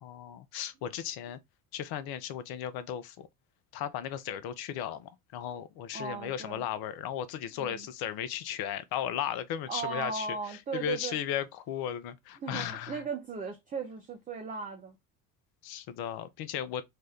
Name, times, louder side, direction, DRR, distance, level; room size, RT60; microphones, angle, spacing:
voice 1, 0.0-1.4 1.7-3.3 3.7-13.0 15.6-16.8, left 9 dB, 50° left, 0.6 m, -36 dB
voice 2, 5.9-6.7 7.6-7.9 9.7-11.2 12.4-15.0, right 5 dB, 20° right, 0.4 m, -37 dB
2.8 x 2.2 x 3.3 m
hypercardioid pair, 60°, 50 cm